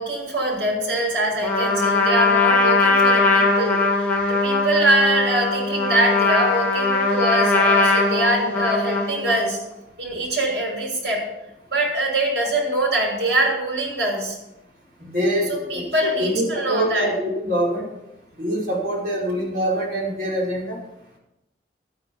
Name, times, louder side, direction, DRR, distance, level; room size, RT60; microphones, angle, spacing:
voice 1, 0.0-9.6 10.0-11.2 11.7-14.4 15.5-17.1, right 1 dB, 80° right, -1 dB, 6.4 m, -23 dB
Trumpet, 1.4-9.5, left 3 dB, 10° left, 2.8 m, -20 dB
voice 2, 15.0-17.8 18.4-20.8, equal, 50° right, -5 dB, 5.7 m, -24 dB
13.0 x 9.9 x 6.0 m, 0.91 s
head